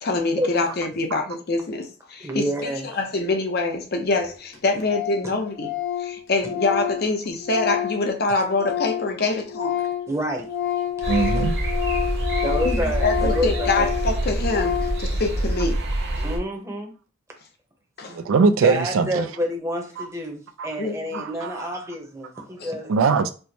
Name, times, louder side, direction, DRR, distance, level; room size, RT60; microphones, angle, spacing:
voice 1, 0.0-5.7 6.0-9.8 12.6-15.8 18.0-18.2 20.8-21.2 22.6-22.7, left 3 dB, 50° left, 0.6 m, -25 dB
voice 2, 2.2-2.9 10.1-10.5 11.0-11.1 12.4-13.9 16.2-16.9 18.6-23.3, equal, 15° right, 0.7 m, -28 dB
Organ, 3.9-4.0 4.2-4.3 4.5-4.6 4.9-5.3 5.6-9.2 9.4-15.1, left 10 dB, 85° left, 1.0 m, -28 dB
sound 1, 11.0-16.4, right 1 dB, 55° right, 0.8 m, -26 dB
voice 3, 11.1-11.5 18.1-19.3 20.0-20.1 20.6-20.7 21.1-21.7 22.9-23.3, right 5 dB, 75° right, 0.3 m, -21 dB
4.4 x 2.1 x 2.7 m
head